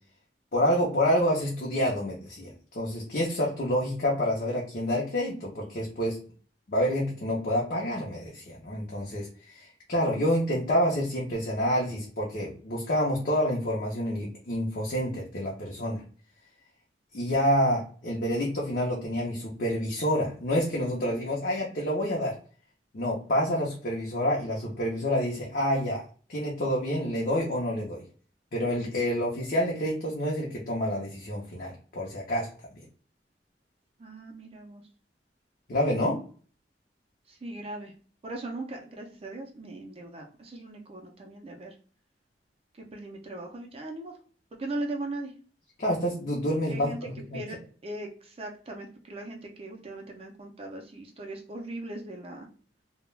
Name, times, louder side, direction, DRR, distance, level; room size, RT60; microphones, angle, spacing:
voice 1, 0.5-6.2 6.7-16.0 17.1-22.3 22.9-26.0 26.3-28.0 28.5-32.5 35.7-36.2 45.8-47.4, equal, 50° left, -3 dB, 0.6 m, -28 dB
voice 2, 34.0-34.8 37.3-37.9 38.2-41.7 42.8-44.1 44.5-45.3 46.7-47.6 47.8-52.5, right 2 dB, 35° right, 1 dB, 0.4 m, -39 dB
2.2 x 2.1 x 3.1 m, 0.41 s
head